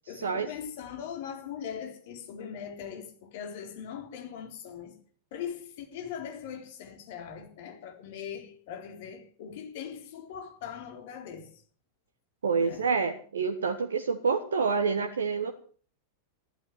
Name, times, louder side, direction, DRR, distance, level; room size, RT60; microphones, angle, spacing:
voice 1, 0.1-5.0 5.3-11.6 12.6-12.9, left 8 dB, 50° left, 3.7 m, -40 dB
voice 2, 12.4-15.5, right 5 dB, 70° right, 1.5 m, -27 dB
15.0 x 12.0 x 7.4 m
figure-of-eight pair, 90°, 0 cm